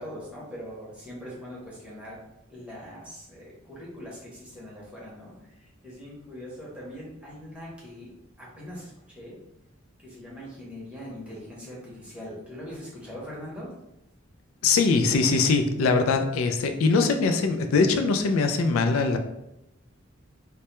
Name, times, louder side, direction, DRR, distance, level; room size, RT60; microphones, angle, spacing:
voice 1, 0.0-2.2 2.5-8.1 8.4-9.4 10.0-13.7, equal, 5° right, -6 dB, 0.7 m, -41 dB
voice 2, 14.6-19.2, left 4 dB, 75° left, 6 dB, 0.3 m, -22 dB
2.2 x 2.1 x 2.9 m, 0.87 s
head